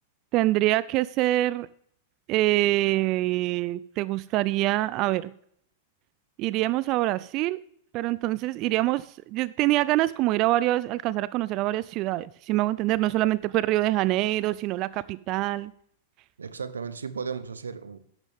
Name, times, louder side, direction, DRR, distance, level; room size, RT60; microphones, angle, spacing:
voice 1, 0.3-1.7 2.3-5.3 6.4-7.6 7.9-15.7, right 16 dB, 45° right, 18 dB, 0.4 m, -25 dB
voice 2, 16.4-18.0, right 5 dB, 90° right, 15 dB, 0.8 m, -35 dB
12.0 x 10.5 x 3.6 m, 0.66 s
hypercardioid pair, 105°, 0 cm